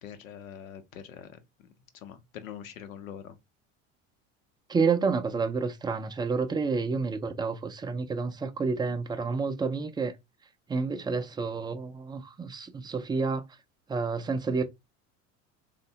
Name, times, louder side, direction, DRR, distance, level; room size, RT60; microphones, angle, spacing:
voice 1, 0.0-1.4 1.9-3.4, left 9 dB, 90° left, 0.7 m, -44 dB
voice 2, 4.7-10.1 10.7-13.4 13.9-14.6, right 4 dB, 10° right, 0.3 m, -29 dB
3.3 x 2.1 x 2.7 m
hypercardioid pair, 80°, 40 cm